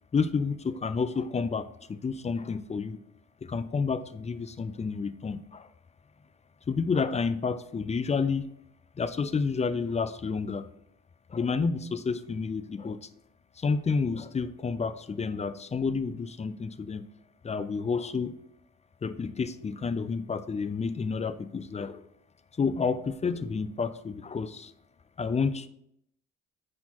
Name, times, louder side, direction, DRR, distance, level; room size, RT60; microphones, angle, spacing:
voice 1, 0.1-3.0 3.4-5.7 6.7-8.5 9.0-10.7 11.3-13.0 13.6-17.1 17.4-18.3 19.0-22.0 22.6-24.7 25.2-25.7, left 5 dB, 20° left, 13 dB, 0.4 m, -30 dB
9.5 x 4.4 x 2.9 m, 0.74 s
cardioid pair, 90°, 30 cm